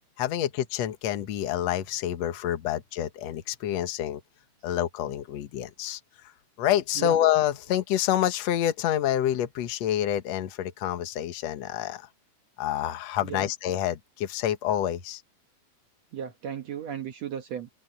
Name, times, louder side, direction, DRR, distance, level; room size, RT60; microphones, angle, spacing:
voice 1, 0.2-4.2 4.6-6.0 6.6-12.1 12.6-15.2, left 11 dB, 60° left, 2.2 m, -27 dB
voice 2, 13.2-13.5 16.1-17.7, right 8 dB, 60° right, 2.2 m, -35 dB
omnidirectional pair, 3.8 m